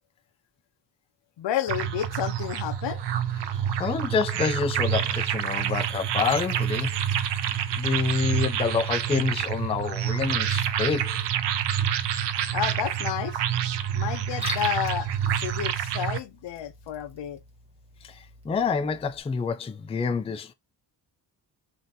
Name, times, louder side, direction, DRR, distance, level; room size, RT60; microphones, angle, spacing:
voice 1, 1.4-3.0 12.5-13.4 13.9-17.4, left 11 dB, 80° left, 0.7 m, -31 dB
sound 1, 1.7-16.2, right 9 dB, 75° right, 0.7 m, -28 dB
voice 2, 3.8-7.5 7.7-11.2 12.1-12.3 18.0-20.5, left 5 dB, 15° left, 0.3 m, -28 dB
Liquid, 14.2-19.2, equal, 15° right, 1.3 m, -41 dB
3.8 x 2.6 x 3.8 m
wide cardioid pair, 135°, 43 cm